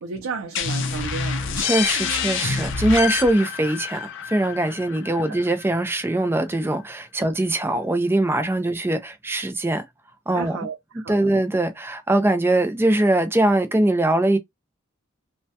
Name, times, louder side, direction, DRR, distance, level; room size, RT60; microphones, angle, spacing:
voice 1, 0.0-1.5 5.3-5.4 10.3-11.4, right 5 dB, 80° right, 0.4 m, -33 dB
sound 1, 0.6-6.0, left 6 dB, 60° left, 0.4 m, -27 dB
voice 2, 1.6-9.8 10.3-10.6 11.1-14.4, right 1 dB, 10° right, 0.3 m, -22 dB
2.2 x 2.1 x 2.6 m
head